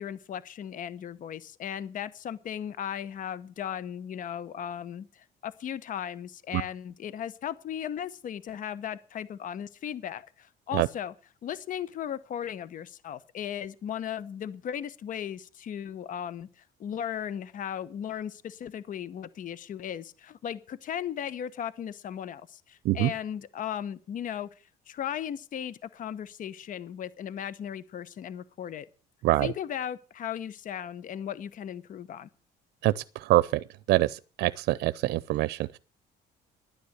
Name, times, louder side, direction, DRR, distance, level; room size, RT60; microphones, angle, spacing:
voice 1, 0.0-11.1 11.4-16.5 16.8-24.5 24.9-28.9 29.4-32.3, left 9 dB, 50° left, 1.0 m, -36 dB
voice 2, 32.8-33.5 33.9-35.8, right 17 dB, 75° right, 0.6 m, -25 dB
12.0 x 9.6 x 7.9 m
cardioid pair, 110°, 17 cm